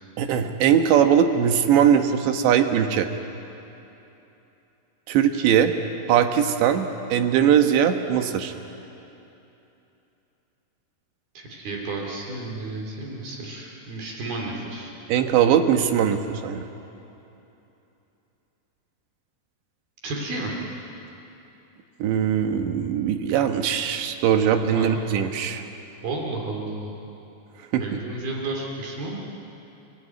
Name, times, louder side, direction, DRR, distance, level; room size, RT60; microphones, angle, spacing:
voice 1, 0.2-3.1 5.1-5.7 6.1-8.5 15.1-16.7 22.0-25.7 27.7-28.0, right 8 dB, 85° right, 6 dB, 3.5 m, -20 dB
voice 2, 11.3-14.9 20.0-20.5 24.7-24.9 26.0-26.9 27.8-29.2, right 2 dB, 60° right, -1 dB, 4.5 m, -32 dB
30.0 x 17.0 x 9.3 m, 2.9 s
omnidirectional pair, 5.0 m